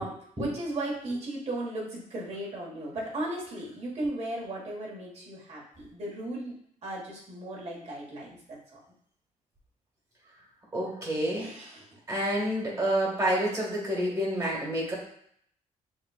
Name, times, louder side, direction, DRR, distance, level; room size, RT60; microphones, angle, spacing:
voice 1, 0.0-6.5 6.8-8.6 11.4-11.8, right 1 dB, 45° right, -4 dB, 1.7 m, -36 dB
voice 2, 10.7-11.5 12.1-14.9, right 1 dB, 25° right, -3 dB, 1.6 m, -28 dB
7.0 x 2.5 x 2.4 m, 0.65 s
cardioid pair, 120°, 15 cm